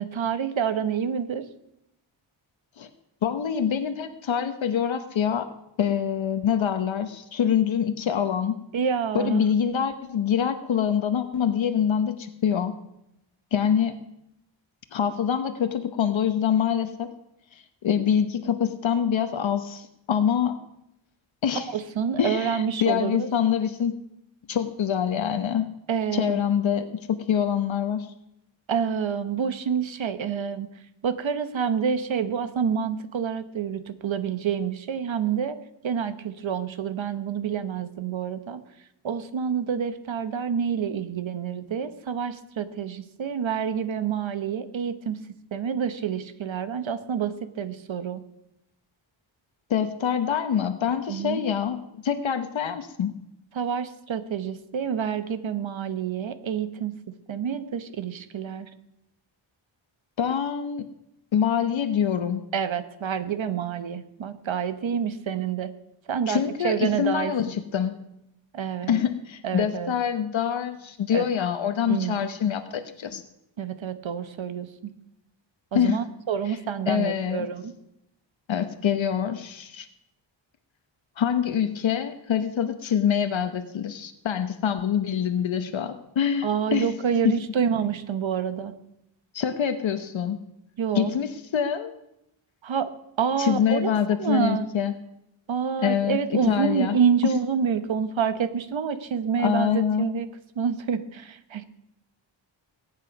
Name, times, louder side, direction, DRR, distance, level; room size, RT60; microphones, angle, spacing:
voice 1, 0.0-1.4 8.7-9.4 21.6-23.3 25.9-26.4 28.7-30.7 31.0-35.6 35.8-38.6 39.0-45.2 45.5-48.2 51.1-51.4 53.5-56.9 57.3-58.7 62.5-65.7 66.1-67.3 68.5-69.0 69.4-69.9 71.1-71.3 71.9-72.3 73.6-74.9 75.7-77.7 86.4-88.7 90.8-91.1 92.6-92.9 93.2-94.6 95.5-100.3 100.6-101.7, right 7 dB, 70° right, 11 dB, 1.1 m, -28 dB
voice 2, 3.2-5.5 5.8-8.6 9.1-12.7 13.5-14.0 14.9-17.1 17.5-20.6 21.4-21.7 22.2-24.0 24.5-25.7 26.1-28.1 49.7-53.1 60.2-60.9 61.3-62.5 66.3-67.9 68.9-73.2 75.7-76.0 76.5-76.6 76.9-77.5 78.5-79.9 81.2-86.9 87.2-87.4 89.3-90.4 90.9-91.9 93.4-94.9 95.8-96.2 96.5-97.0 97.2-97.3 99.4-100.1, left 8 dB, 70° left, 8 dB, 1.0 m, -25 dB
20.5 x 9.0 x 5.3 m, 0.83 s
wide cardioid pair, 115°, 47 cm